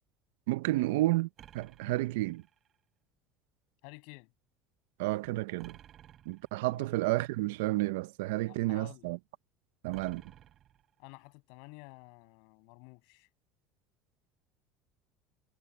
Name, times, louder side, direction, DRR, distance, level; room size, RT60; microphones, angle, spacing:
voice 1, 0.5-1.3 1.5-2.4 5.0-5.8 6.3-9.2 9.8-10.2, right 18 dB, 90° right, 0.6 m, -31 dB
sound 1, 1.4-2.8 5.6-6.7 9.9-11.2, right 11 dB, 45° right, 3.2 m, -56 dB
voice 2, 3.8-4.3 6.7-6.8 8.5-9.1 11.0-13.3, left 34 dB, 75° left, 7.9 m, -51 dB
supercardioid pair, 130°, 0 cm